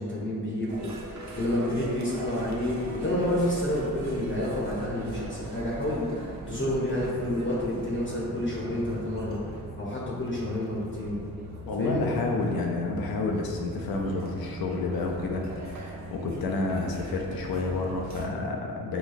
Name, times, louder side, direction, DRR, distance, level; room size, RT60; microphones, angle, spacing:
voice 1, 0.0-9.4 9.8-11.2 11.8-12.1, left 1 dB, 35° left, -6 dB, 0.8 m, -29 dB
sound 1, 0.7-18.3, right 2 dB, 50° right, 0.6 m, -40 dB
voice 2, 11.7-19.0, left 3 dB, 75° left, 1 dB, 0.5 m, -30 dB
3.9 x 2.2 x 2.5 m, 2.1 s
cardioid pair, 45°, 36 cm